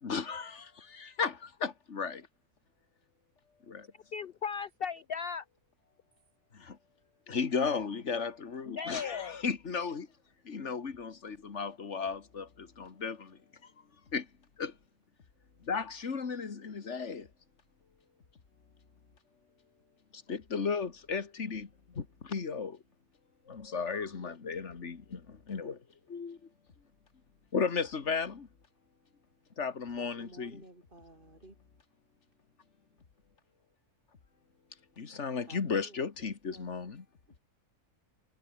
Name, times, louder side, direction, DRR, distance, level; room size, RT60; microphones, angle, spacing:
voice 1, 0.0-2.3 3.7-3.9 6.5-6.8 7.3-10.1 10.5-13.7 14.1-14.3 14.6-14.7 15.6-17.3 20.1-22.8 23.5-25.8 26.1-26.4 27.5-28.5 29.6-30.6 35.0-37.0, left 5 dB, 45° left, 2.1 m, -35 dB
voice 2, 4.1-5.4 8.7-9.4, left 6 dB, 80° left, 0.5 m, -37 dB
voice 3, 29.9-31.6 35.5-37.0, right 2 dB, 30° right, 4.9 m, -55 dB
omnidirectional pair, 1.7 m